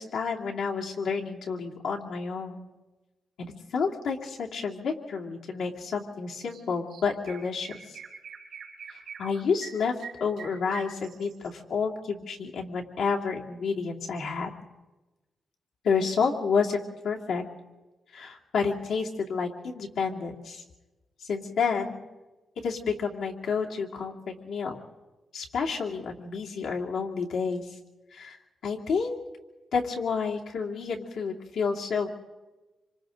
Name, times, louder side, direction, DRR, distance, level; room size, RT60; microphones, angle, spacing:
voice 1, 0.0-2.7 3.4-8.0 8.9-14.5 15.8-17.4 18.1-20.6 21.2-22.0 22.6-24.8 25.3-27.7 28.1-28.4 28.6-29.2 29.7-32.1, left 5 dB, 85° left, 0 dB, 2.7 m, -30 dB
Chirp tweet, 6.5-6.6 6.9-11.5, right 6 dB, 70° right, 3.9 m, -44 dB
27.0 x 26.5 x 3.9 m, 1.1 s
wide cardioid pair, 170°, 0 cm